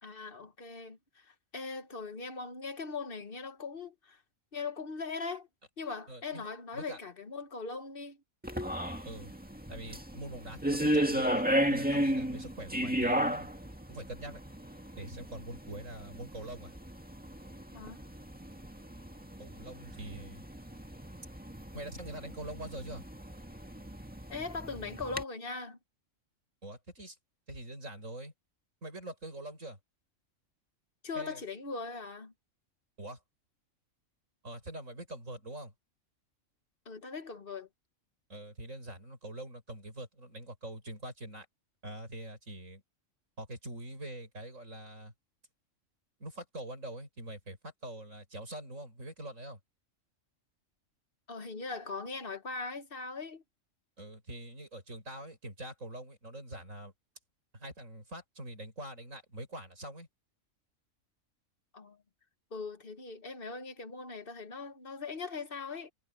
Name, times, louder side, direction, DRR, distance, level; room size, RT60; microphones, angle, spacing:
voice 1, 0.0-4.2 4.5-5.5 5.8-8.2 17.7-18.0 24.3-25.8 31.0-32.3 36.8-37.7 51.3-53.4 61.7-62.0 62.5-65.9, left 4 dB, 45° left, 1.6 m, -40 dB
voice 2, 6.1-6.5 6.7-7.0 9.0-9.3 9.7-13.5 13.9-14.4 15.0-16.7 19.4-20.4 21.7-23.0 26.6-27.2 27.5-28.3 28.8-29.8 31.1-31.4 33.0-33.2 34.4-35.7 38.3-41.5 41.8-42.8 43.4-45.1 46.2-49.6 54.0-56.9 57.5-60.1, right 1 dB, 70° right, 7.9 m, -44 dB
sound 1, 8.4-25.2, equal, 5° right, 1.8 m, -35 dB
omnidirectional pair, 1.4 m